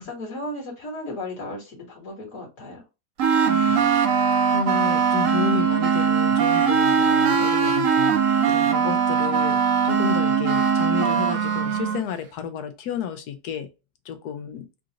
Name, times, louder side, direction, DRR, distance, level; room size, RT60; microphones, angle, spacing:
voice 1, 0.0-2.8, left 1 dB, 55° left, 1.9 m, -35 dB
sound 1, 3.2-12.0, right 6 dB, 65° right, 0.9 m, -20 dB
voice 2, 3.5-4.0 4.5-8.2 8.4-13.7 14.0-14.7, left 8 dB, 80° left, 1.2 m, -32 dB
3.8 x 2.5 x 2.8 m
omnidirectional pair, 1.7 m